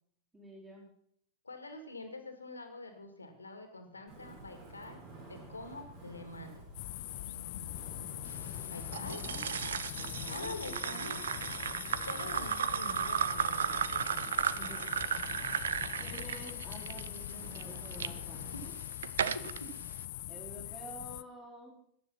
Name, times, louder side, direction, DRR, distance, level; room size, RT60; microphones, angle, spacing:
voice 1, 0.3-0.9 8.5-9.5 9.9-11.0 14.4-14.8 16.0-18.5 20.3-21.8, right 1 dB, 10° right, -8 dB, 4.6 m, -50 dB
voice 2, 1.4-6.6 7.2-7.7 8.7-9.2 10.3-11.2 12.0-14.1 18.5-18.8 19.3-19.8, left 2 dB, 80° left, 7 dB, 2.4 m, -46 dB
Wind, 4.1-18.8, right 1 dB, 50° right, 7.2 m, -51 dB
sound 1, 6.7-21.2, left 18 dB, 50° left, 0.4 m, -42 dB
sound 2, 8.9-18.1 18.7-19.6, right 8 dB, 65° right, 0.6 m, -35 dB
14.5 x 10.0 x 5.7 m, 0.67 s
figure-of-eight pair, 90°, 0 cm